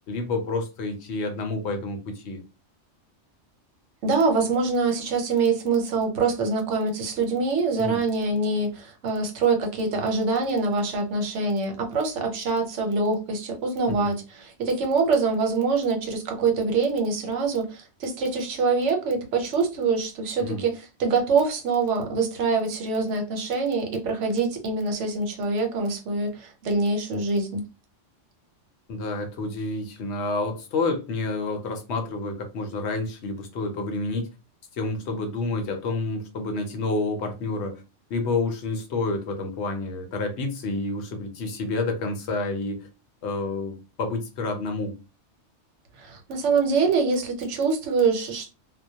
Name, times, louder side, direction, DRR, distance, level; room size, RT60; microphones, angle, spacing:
voice 1, 0.1-2.4 7.8-8.0 13.9-14.1 20.4-20.6 28.9-34.3 34.7-37.8 38.1-42.9 43.2-45.0, left 3 dB, 70° left, 0.9 m, -29 dB
voice 2, 4.0-27.6 46.0-48.5, right 4 dB, 85° right, 1.0 m, -25 dB
2.2 x 2.1 x 2.7 m
omnidirectional pair, 1.2 m